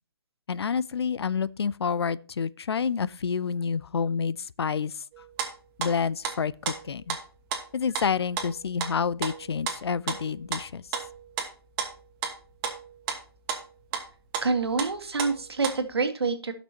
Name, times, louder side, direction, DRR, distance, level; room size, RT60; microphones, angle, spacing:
voice 1, 0.5-5.2 5.8-7.2 7.7-10.9, left 6 dB, 85° left, 0.5 m, -29 dB
sound 1, 5.1-5.5 5.8-6.4 6.7-7.2 7.5-8.1 8.4-13.2 13.5-13.6 13.9-14.0 14.3-15.9, right 7 dB, 25° right, 1.3 m, -33 dB
voice 2, 14.4-16.5, right 4 dB, 85° right, 1.7 m, -27 dB
15.5 x 6.0 x 2.8 m
hypercardioid pair, 150°, 13 cm